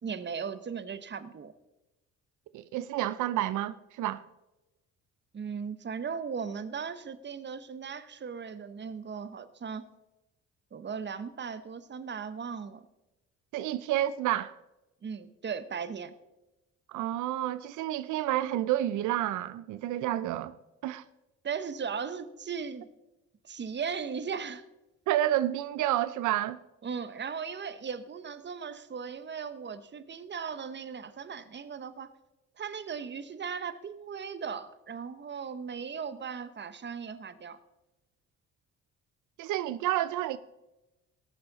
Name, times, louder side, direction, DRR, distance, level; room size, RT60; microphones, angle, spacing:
voice 1, 0.0-1.5 5.3-9.9 10.7-12.9 15.0-16.1 21.4-22.9 23.4-24.6 26.8-32.1 32.6-37.6, right 6 dB, 35° right, 0.9 m, -37 dB
voice 2, 2.5-4.2 13.5-14.5 16.9-20.6 20.8-21.0 25.1-26.6 39.4-40.4, right 13 dB, 80° right, 0.5 m, -29 dB
17.0 x 7.0 x 4.0 m
cardioid pair, 90°, 30 cm